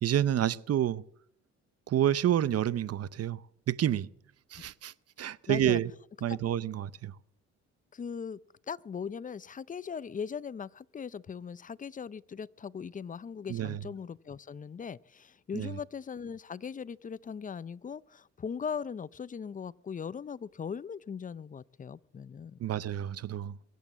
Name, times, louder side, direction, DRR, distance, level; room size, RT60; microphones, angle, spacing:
voice 1, 0.0-1.0 1.9-3.4 3.7-4.1 4.5-4.9 5.2-5.9 6.2-7.1 13.5-13.8 15.5-15.7 22.6-23.6, right 11 dB, 55° right, 0.7 m, -29 dB
voice 2, 5.5-5.8 6.3-6.4 7.9-8.4 8.7-22.6, left 6 dB, 25° left, 0.5 m, -39 dB
22.5 x 8.3 x 7.4 m
cardioid pair, 90°, 30 cm